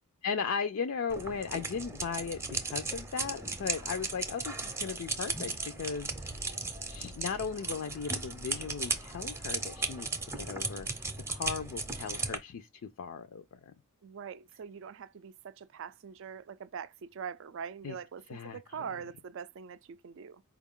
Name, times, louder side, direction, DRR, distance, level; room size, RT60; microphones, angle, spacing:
voice 1, 0.2-6.6 6.9-10.1 10.4-12.7 13.0-13.7 17.8-18.0 18.3-18.6, left 6 dB, 65° left, 0.4 m, -37 dB
sound 1, 1.1-12.4, right 3 dB, 10° right, 0.6 m, -36 dB
voice 2, 14.0-20.4, right 7 dB, 60° right, 0.4 m, -43 dB
4.6 x 2.3 x 3.6 m
head